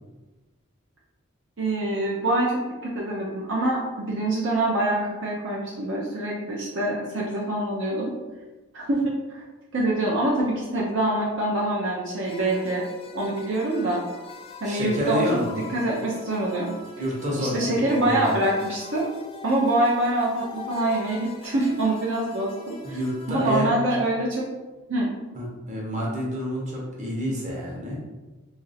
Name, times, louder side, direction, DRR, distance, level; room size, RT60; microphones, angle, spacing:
voice 1, 1.6-8.1 8.7-9.4 9.7-12.8 13.1-14.0 14.6-15.2 15.7-16.7 17.4-19.1 19.4-23.0 23.3-24.5 24.9-25.1, right 1 dB, 60° right, -4 dB, 0.6 m, -25 dB
sound 1, 12.2-23.5, left 5 dB, 25° left, 0.5 m, -42 dB
voice 2, 14.6-15.6 17.0-18.3 22.8-23.7 25.3-28.0, equal, 35° right, -4 dB, 0.9 m, -28 dB
3.0 x 2.5 x 4.1 m, 1.2 s
head